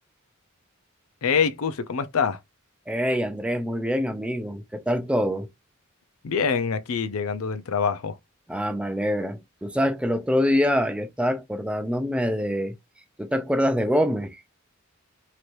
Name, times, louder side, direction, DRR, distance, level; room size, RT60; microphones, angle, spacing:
voice 1, 1.2-2.4 6.2-8.1, left 6 dB, 80° left, 0.5 m, -25 dB
voice 2, 2.9-5.5 8.5-12.8 13.2-14.4, equal, 5° right, 0.4 m, -25 dB
3.2 x 2.9 x 2.5 m
head